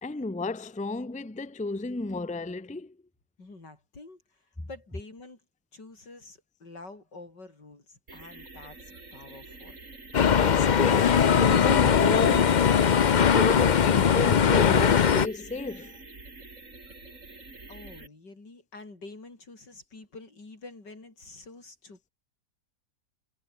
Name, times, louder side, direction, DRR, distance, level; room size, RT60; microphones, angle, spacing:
voice 1, 0.0-2.9 10.4-16.0, left 2 dB, 5° left, 0.8 m, -33 dB
voice 2, 3.4-4.2 4.7-5.4 5.7-9.8 17.7-22.1, left 3 dB, 90° left, 6.1 m, -47 dB
sound 1, 8.1-18.1, right 3 dB, 45° right, 4.2 m, -47 dB
sound 2, 10.1-15.3, left 7 dB, 65° left, 0.4 m, -20 dB
omnidirectional pair, 1.8 m